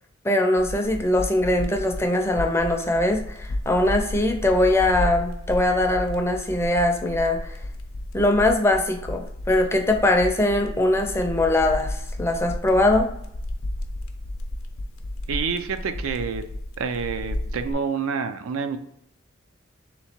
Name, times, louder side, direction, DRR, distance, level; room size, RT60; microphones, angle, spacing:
voice 1, 0.2-7.6 8.1-13.1, left 1 dB, 15° left, 3 dB, 0.5 m, -21 dB
sound 1, 0.6-17.7, left 1 dB, 85° left, 0.6 m, -33 dB
voice 2, 15.3-16.4 16.8-18.8, right 5 dB, 80° right, 8 dB, 0.4 m, -28 dB
3.5 x 2.9 x 4.3 m, 0.73 s
head